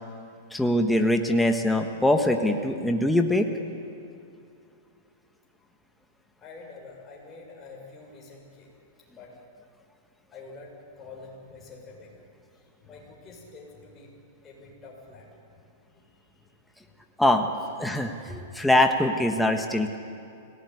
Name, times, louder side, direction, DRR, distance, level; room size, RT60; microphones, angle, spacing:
voice 1, 0.5-3.5 17.2-17.5 17.8-20.0, left 1 dB, 5° left, 4 dB, 1.4 m, -23 dB
voice 2, 6.4-8.7 9.1-9.3 10.3-12.2 12.5-14.1 14.4-15.6 15.9-16.9 18.1-18.3, left 3 dB, 20° left, -2 dB, 7.1 m, -47 dB
24.5 x 18.0 x 9.7 m, 2.6 s
hypercardioid pair, 145°, 0 cm